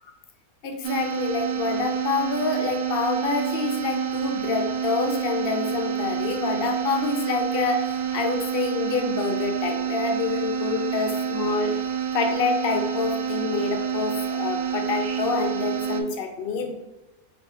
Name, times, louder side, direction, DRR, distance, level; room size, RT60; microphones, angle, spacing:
voice 1, 0.6-11.7 12.1-16.7, left 4 dB, 60° left, 3 dB, 0.6 m, -27 dB
sound 1, 0.8-16.0, right 8 dB, 75° right, 0.5 m, -28 dB
4.4 x 2.6 x 3.5 m, 1.0 s
omnidirectional pair, 1.5 m